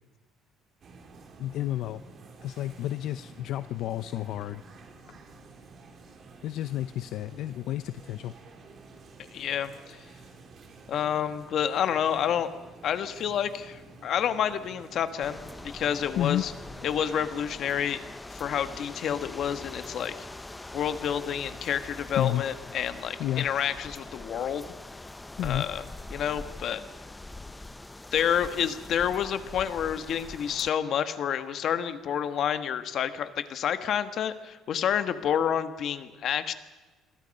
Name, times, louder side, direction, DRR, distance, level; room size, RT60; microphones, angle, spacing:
sound 1, 0.8-17.2, right 3 dB, 35° right, 3.1 m, -51 dB
voice 1, 1.4-2.0 2.4-4.6 6.4-8.3 16.2-16.4 22.2-22.4 23.2-23.5 25.4-25.6, left 13 dB, 60° left, 13 dB, 0.6 m, -31 dB
voice 2, 9.3-10.0 10.9-12.5 12.8-16.5 16.8-18.0 18.3-20.1 20.7-24.7 25.4-25.8 26.1-26.8 28.1-36.5, left 9 dB, 45° left, 10 dB, 1.5 m, -29 dB
sound 2, 15.2-30.7, left 2 dB, 10° left, 0.7 m, -43 dB
28.0 x 22.5 x 5.4 m, 1.3 s
cardioid pair, 165°, 0 cm